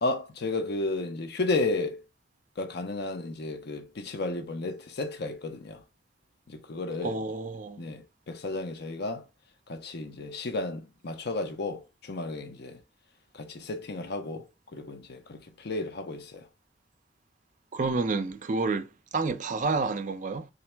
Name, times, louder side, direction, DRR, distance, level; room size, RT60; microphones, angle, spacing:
voice 1, 0.0-2.0 2.6-5.8 6.5-7.2 7.8-9.3 9.7-12.8 13.3-14.5 14.7-16.5, left 2 dB, 60° left, 0.5 m, -33 dB
voice 2, 7.0-7.8 17.7-18.9 19.1-20.5, right 3 dB, 40° right, 0.4 m, -29 dB
3.8 x 2.1 x 4.3 m
head